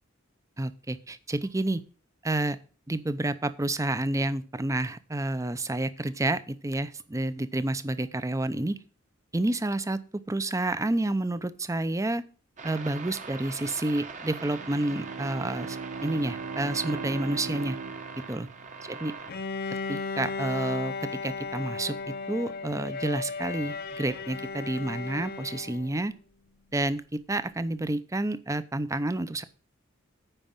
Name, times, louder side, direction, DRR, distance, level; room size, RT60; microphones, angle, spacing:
voice 1, 0.6-1.8 2.2-2.6 2.9-8.8 9.3-10.0 10.3-12.2 12.6-17.8 18.3-18.5 18.9-19.1 19.9-26.1 26.7-29.4, right 2 dB, 15° right, 13 dB, 0.6 m, -29 dB
sound 1, 12.6-19.3, right 4 dB, 40° right, 1.2 m, -41 dB
Bowed string instrument, 14.5-19.2, right 4 dB, 75° right, 0.6 m, -39 dB
Bowed string instrument 2, 19.3-26.0, left 4 dB, 50° left, 0.7 m, -35 dB
9.0 x 5.3 x 7.3 m, 0.38 s
head